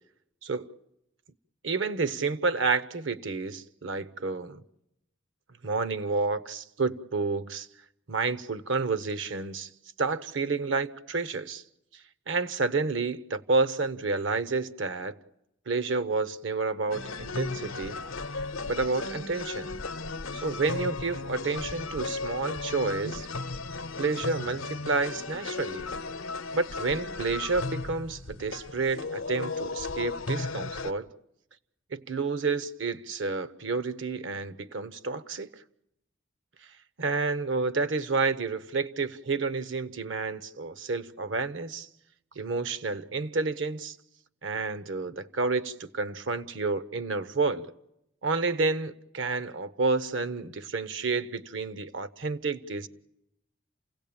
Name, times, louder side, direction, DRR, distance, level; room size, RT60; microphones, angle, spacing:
voice 1, 1.6-4.6 5.6-7.7 8.1-9.7 10.0-11.6 11.9-15.2 15.7-18.0 18.7-19.8 20.3-23.3 24.0-25.9 26.5-31.1 31.9-35.6 36.6-41.9 42.3-44.0 44.4-47.7 48.2-52.9, right 4 dB, 70° right, 0.9 m, -30 dB
sound 1, 16.9-30.9, left 3 dB, 90° left, 0.8 m, -35 dB
28.5 x 17.0 x 8.7 m
head